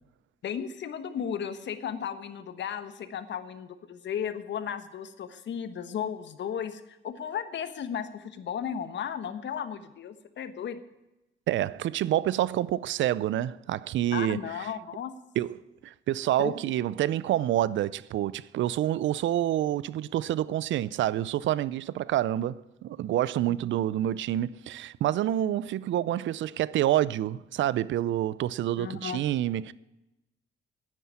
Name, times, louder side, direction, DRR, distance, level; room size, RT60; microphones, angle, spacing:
voice 1, 0.4-10.8 14.1-15.1 16.4-16.5 23.5-23.6 28.8-29.2, left 8 dB, 65° left, 1.3 m, -35 dB
voice 2, 11.5-14.4 15.4-15.6 15.8-29.7, right 12 dB, 70° right, 0.5 m, -27 dB
10.0 x 9.6 x 9.6 m
cardioid pair, 90°, 20 cm